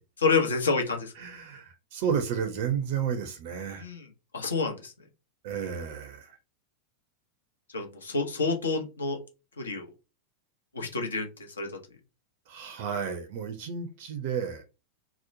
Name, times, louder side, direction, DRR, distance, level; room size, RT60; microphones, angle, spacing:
voice 1, 0.2-1.1 3.8-4.1 4.3-4.9 7.7-9.2 9.6-9.9 10.7-11.7, left 4 dB, 70° left, 0.7 m, -28 dB
voice 2, 1.2-3.8 5.4-6.4 12.5-14.6, right 7 dB, 50° right, 0.5 m, -32 dB
2.9 x 2.1 x 2.5 m
figure-of-eight pair, 90°, 0 cm